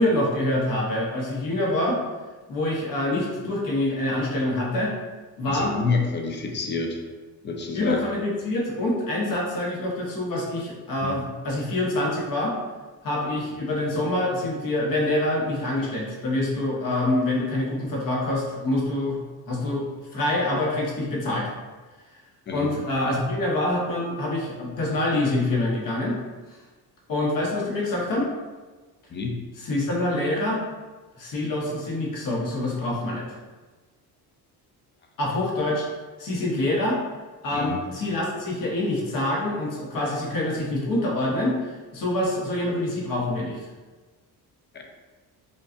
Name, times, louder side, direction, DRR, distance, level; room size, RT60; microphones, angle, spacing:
voice 1, 0.0-2.0 2.5-4.9 5.4-5.7 7.7-12.5 13.0-19.2 19.5-19.9 20.1-21.5 22.5-26.2 27.1-28.3 29.6-30.6 31.2-33.4 35.2-35.8 36.2-37.0 37.4-43.6, left 1 dB, 50° left, -2 dB, 1.0 m, -26 dB
voice 2, 5.5-7.0 7.4-8.0 11.0-11.2 22.5-22.7 29.1-29.4 37.5-37.8 44.7-44.8, left 4 dB, 30° left, 2 dB, 0.4 m, -28 dB
5.2 x 2.3 x 2.5 m, 1.3 s
cardioid pair, 160°, 41 cm